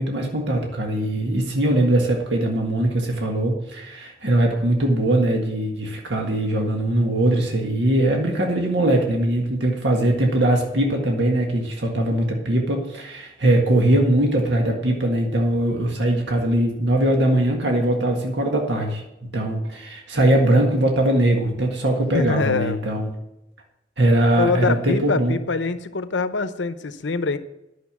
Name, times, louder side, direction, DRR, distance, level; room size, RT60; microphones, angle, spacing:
voice 1, 0.0-19.0 19.3-23.1 24.0-25.4, right 1 dB, 65° right, 1 dB, 1.7 m, -21 dB
voice 2, 22.1-22.8 24.4-27.4, left 4 dB, 80° left, 11 dB, 0.8 m, -24 dB
10.5 x 6.7 x 7.3 m, 0.90 s
head